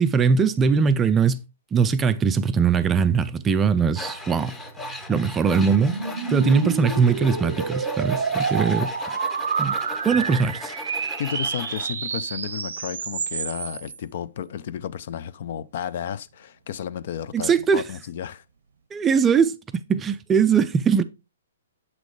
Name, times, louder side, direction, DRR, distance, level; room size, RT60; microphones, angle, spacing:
voice 1, 0.0-1.4 1.7-4.6 5.1-5.9 6.3-8.9 9.6-9.8 10.0-10.7 17.3-17.8 18.9-21.0, right 6 dB, 15° right, 0.4 m, -21 dB
Tools, 3.9-11.9, left 2 dB, 10° left, 0.7 m, -37 dB
sound 1, 4.2-14.0, right 5 dB, 85° right, 0.8 m, -29 dB
voice 2, 11.2-18.4, left 9 dB, 50° left, 0.4 m, -32 dB
7.4 x 6.2 x 3.1 m
hypercardioid pair, 160°, 0 cm